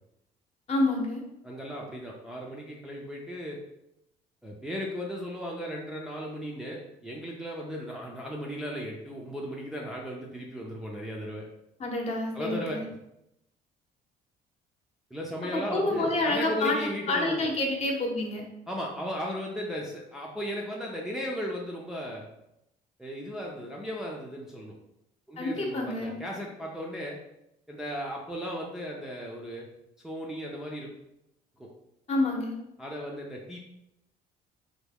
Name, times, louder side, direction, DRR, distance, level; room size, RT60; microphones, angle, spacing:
voice 1, 0.7-1.2 11.8-12.8 15.5-18.5 25.4-26.2 32.1-32.5, left 2 dB, 40° left, 0 dB, 0.8 m, -28 dB
voice 2, 1.4-3.6 4.4-11.5 12.3-12.8 15.1-17.4 18.7-22.3 23.0-24.7 25.3-27.2 27.7-29.7 30.0-30.9 31.6-31.7 32.8-33.6, equal, 5° right, -3 dB, 0.4 m, -36 dB
3.4 x 2.2 x 3.5 m, 0.84 s
cardioid pair, 110°, 17 cm